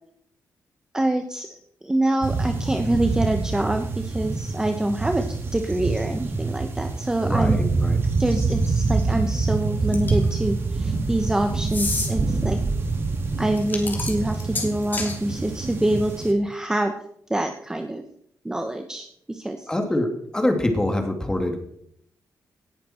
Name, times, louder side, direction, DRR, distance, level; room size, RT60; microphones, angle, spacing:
voice 1, 0.9-5.2 5.5-7.6 8.2-12.6 13.4-16.9 17.3-18.0 18.4-19.7, right 1 dB, 10° right, 6 dB, 1.0 m, -25 dB
sound 1, 2.2-16.3, right 3 dB, 40° right, 2.6 m, -26 dB
voice 2, 7.2-8.0 19.7-21.6, left 1 dB, 10° left, 4 dB, 2.6 m, -25 dB
sound 2, 9.9-10.3 11.7-12.1 13.6-15.2, left 3 dB, 30° left, 3.0 m, -29 dB
18.0 x 11.0 x 4.4 m, 0.70 s
wide cardioid pair, 145°, 6 cm